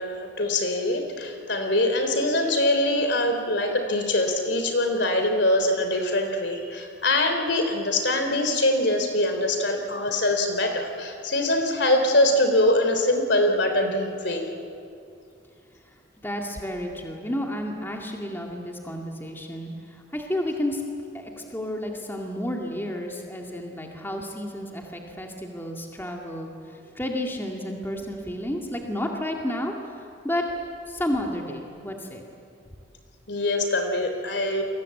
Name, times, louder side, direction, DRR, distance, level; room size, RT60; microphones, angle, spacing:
voice 1, 0.0-14.5 33.3-34.6, left 1 dB, 60° left, 6 dB, 3.5 m, -23 dB
voice 2, 16.2-20.8 21.1-30.5 30.9-32.2, left 1 dB, 10° left, 1 dB, 2.2 m, -31 dB
29.5 x 23.5 x 8.5 m, 2.6 s
head